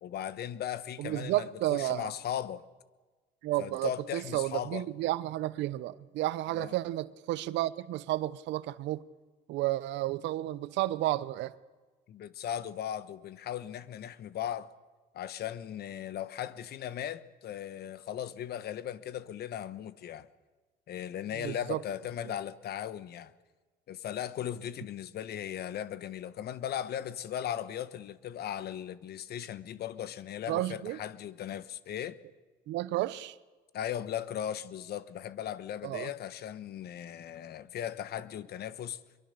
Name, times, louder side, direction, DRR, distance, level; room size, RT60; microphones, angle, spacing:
voice 1, 0.0-2.6 3.6-4.8 6.5-6.7 12.1-14.7 15.1-20.3 20.9-23.3 23.9-32.2 33.7-39.0, left 10 dB, 60° left, 1.3 m, -37 dB
voice 2, 1.0-2.1 3.4-9.0 9.5-11.5 21.3-21.8 30.5-31.0 32.7-33.4 35.8-36.1, right 16 dB, 75° right, 0.9 m, -32 dB
23.0 x 23.0 x 6.9 m
supercardioid pair, 90°, 19 cm